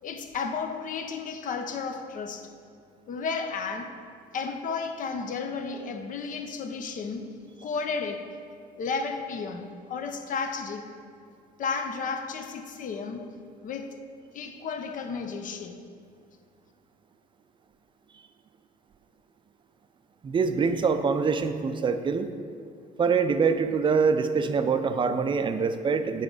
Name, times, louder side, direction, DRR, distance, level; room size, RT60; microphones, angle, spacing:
voice 1, 0.0-2.5 3.1-3.9 4.3-7.3 7.6-8.2 8.8-10.8 11.6-13.3 13.6-14.0 14.3-15.8, left 5 dB, 50° left, 5 dB, 0.7 m, -33 dB
voice 2, 20.2-22.3 23.0-26.2, right 5 dB, 30° right, 8 dB, 0.5 m, -24 dB
9.2 x 3.9 x 4.9 m, 2.3 s
cardioid pair, 110°, 17 cm